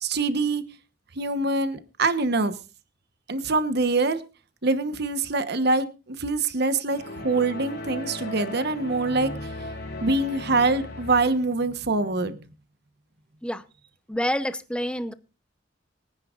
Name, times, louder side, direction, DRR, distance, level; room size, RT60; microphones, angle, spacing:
voice 1, 0.0-0.6 1.2-2.5 3.3-4.2 4.6-9.3 10.0-12.4, right 3 dB, 60° right, 1.1 m, -24 dB
sound 1, 6.9-11.5, left 1 dB, 60° left, 3.3 m, -36 dB
voice 2, 14.1-15.1, equal, 5° left, 0.8 m, -27 dB
24.0 x 9.9 x 2.5 m
head